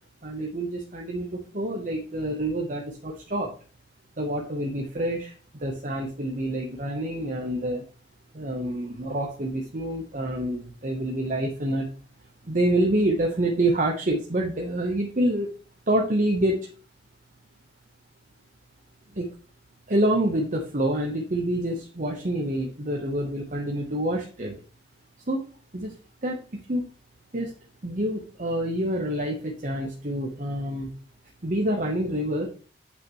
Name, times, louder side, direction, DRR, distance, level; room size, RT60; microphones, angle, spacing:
voice 1, 0.2-3.5 4.2-7.8 8.3-11.9 12.4-15.5 15.9-16.7 19.1-19.3 19.9-24.6 25.3-25.5 25.7-25.9 26.2-26.8 27.3-27.5 27.8-30.9 31.4-32.5, right 1 dB, 50° right, 1 dB, 1.1 m, -27 dB
8.3 x 5.9 x 3.1 m, 0.37 s
head